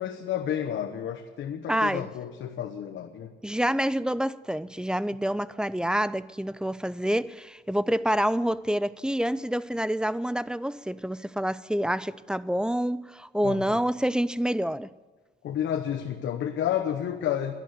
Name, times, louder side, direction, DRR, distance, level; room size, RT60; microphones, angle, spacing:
voice 1, 0.0-3.3 13.4-13.8 15.4-17.5, left 10 dB, 70° left, 1.1 m, -31 dB
voice 2, 1.7-2.1 3.4-14.9, equal, 5° right, 0.4 m, -27 dB
12.0 x 11.5 x 9.5 m
cardioid pair, 90°, 20 cm